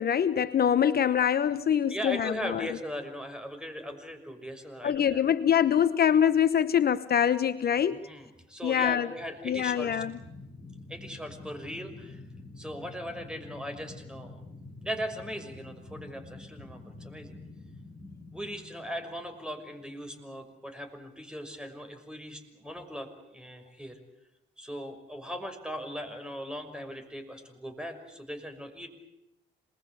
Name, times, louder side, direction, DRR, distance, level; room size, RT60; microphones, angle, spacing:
voice 1, 0.0-2.7 4.8-8.0 8.6-9.1 9.4-10.1, left 9 dB, 50° left, 1.0 m, -24 dB
voice 2, 1.9-5.3 7.9-10.0 10.9-12.2 12.6-14.4 14.8-17.4 18.3-24.0 24.6-28.9, equal, 5° right, 6.0 m, -39 dB
sound 1, 9.2-20.1, left 2 dB, 15° left, 7.5 m, -48 dB
27.5 x 21.5 x 8.4 m
cardioid pair, 90°, 20 cm